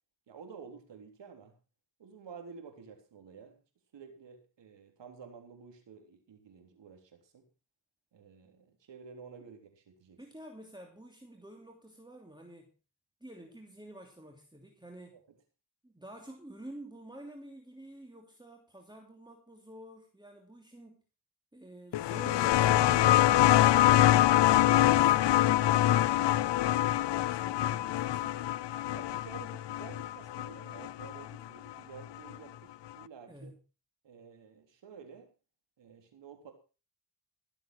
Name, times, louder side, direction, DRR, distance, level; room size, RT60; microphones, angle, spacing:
voice 1, 0.3-1.6 2.0-3.6 3.9-7.5 8.1-10.2 15.1-15.2 22.2-22.5 28.9-33.5 34.0-35.3 35.8-36.5, right 6 dB, 85° right, 5 dB, 3.6 m, -51 dB
voice 2, 10.2-12.7 13.2-15.2 15.8-21.0 21.5-24.0 24.4-28.5 33.3-33.6, right 1 dB, 10° right, 2 dB, 2.9 m, -49 dB
sound 1, 21.9-31.2 32.3-32.4, left 13 dB, 80° left, 0.5 m, -25 dB
16.0 x 7.8 x 6.0 m, 0.34 s
cardioid pair, 60°, 42 cm